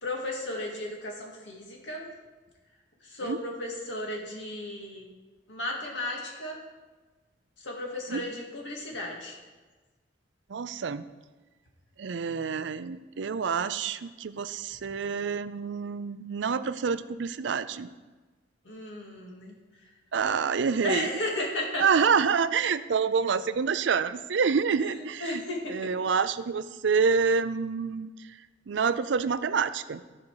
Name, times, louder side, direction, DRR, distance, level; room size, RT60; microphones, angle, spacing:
voice 1, 0.0-2.1 3.0-5.1 5.5-6.6 7.6-9.3 18.7-19.6 20.8-22.0 24.8-24.9 25.2-25.9, left 1 dB, 80° left, -1 dB, 2.0 m, -34 dB
voice 2, 10.5-11.0 12.0-17.9 20.1-21.1 21.8-25.4 25.7-28.1 28.7-30.0, right 5 dB, 75° right, 14 dB, 0.5 m, -27 dB
14.0 x 5.4 x 4.8 m, 1.3 s
head